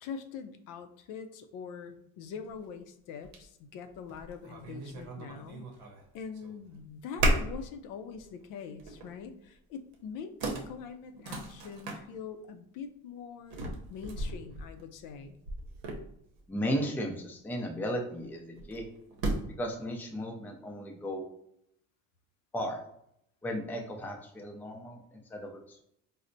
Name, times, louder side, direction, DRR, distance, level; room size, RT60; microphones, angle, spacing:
voice 1, 0.0-5.7 6.1-15.4, left 6 dB, 70° left, 7 dB, 0.5 m, -43 dB
sound 1, 2.5-2.6 3.2-3.4 3.9-6.0 6.3-6.8 7.2-7.7 8.1-8.3 8.8-9.2 9.9-10.0 10.4-12.0 13.5-16.4 18.6-19.7, right 1 dB, 85° right, 0.7 m, -35 dB
voice 2, 16.5-18.8 19.6-21.3 22.5-22.8 23.4-25.8, equal, 5° left, 1 dB, 0.4 m, -35 dB
4.2 x 2.0 x 2.5 m, 0.75 s
cardioid pair, 130°, 33 cm